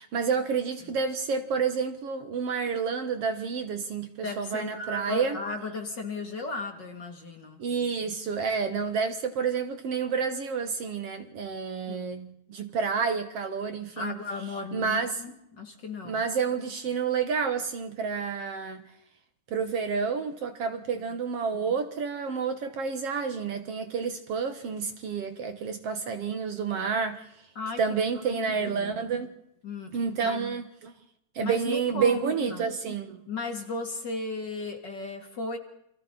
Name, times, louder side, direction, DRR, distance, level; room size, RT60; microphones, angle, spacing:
voice 1, 0.0-5.4 7.6-14.2 14.7-15.2 16.0-18.8 19.5-27.3 27.8-29.3 29.9-30.9 31.4-33.2, right 5 dB, 60° right, 2.2 m, -29 dB
voice 2, 4.2-7.6 11.9-12.0 14.0-16.2 20.9-21.0 27.5-27.8 28.1-28.9 29.6-30.4 31.4-32.2 32.5-32.6 33.3-35.6, left 3 dB, 35° left, 2.9 m, -35 dB
29.5 x 25.0 x 4.1 m
omnidirectional pair, 3.4 m